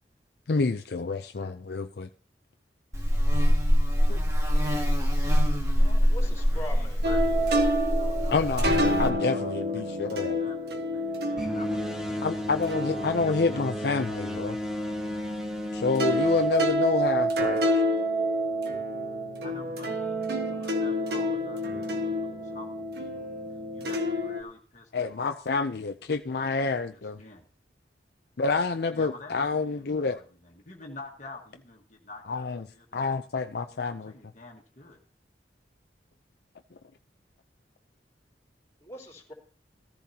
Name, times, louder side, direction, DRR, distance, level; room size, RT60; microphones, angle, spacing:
voice 1, 0.5-2.1 4.1-4.2 8.3-10.5 12.2-14.6 15.7-17.8 24.9-27.2 28.4-30.2 32.3-34.1, left 4 dB, 65° left, 0.5 m, -28 dB
Buzz, 2.9-9.1, equal, 20° right, 1.9 m, -24 dB
voice 2, 5.4-6.1 6.5-8.4 8.7-12.2 12.9-13.9 19.4-23.3 23.7-25.4 26.5-26.6 27.2-27.4 28.9-29.4 30.1-30.2 30.7-32.4 33.7-35.0, left 3 dB, 45° left, 1.6 m, -47 dB
voice 3, 6.1-7.1 38.8-39.3, left 1 dB, 15° left, 3.3 m, -41 dB
sound 1, 7.0-15.7 16.0-24.4, equal, 65° right, 1.5 m, -29 dB
sound 2, 11.4-17.4, left 1 dB, 5° right, 1.6 m, -34 dB
14.5 x 14.0 x 2.8 m
head